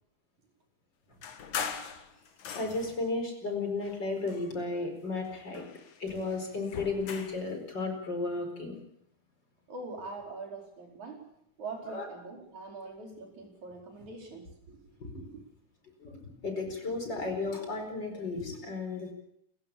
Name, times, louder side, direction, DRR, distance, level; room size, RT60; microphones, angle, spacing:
sound 1, 1.2-3.1 3.8-4.9 5.3-7.5, left 7 dB, 75° left, 3.2 m, -41 dB
voice 1, 2.5-5.6 6.0-8.8 11.9-12.1 15.0-15.1 16.0-19.1, left 3 dB, 35° left, 4 dB, 5.4 m, -34 dB
voice 2, 9.7-11.3 11.6-14.8 15.1-15.4, right 3 dB, 75° right, 1 dB, 6.3 m, -43 dB
29.0 x 15.5 x 7.1 m, 0.73 s
omnidirectional pair, 3.4 m